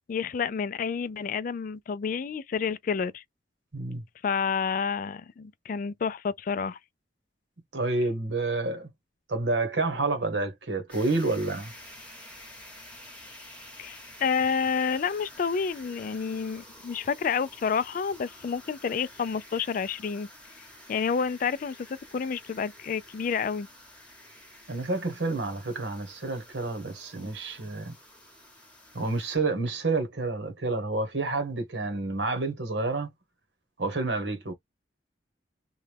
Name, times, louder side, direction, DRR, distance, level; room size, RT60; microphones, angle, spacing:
voice 1, 0.1-3.2 4.2-6.8 13.8-20.3 20.9-23.7, left 6 dB, 45° left, 0.3 m, -29 dB
voice 2, 7.7-8.9 9.3-11.7 24.7-27.9 28.9-33.1 33.8-34.5, right 3 dB, 75° right, 1.1 m, -29 dB
sound 1, 10.9-29.4, left 1 dB, 5° left, 1.0 m, -50 dB
3.0 x 2.3 x 3.3 m
head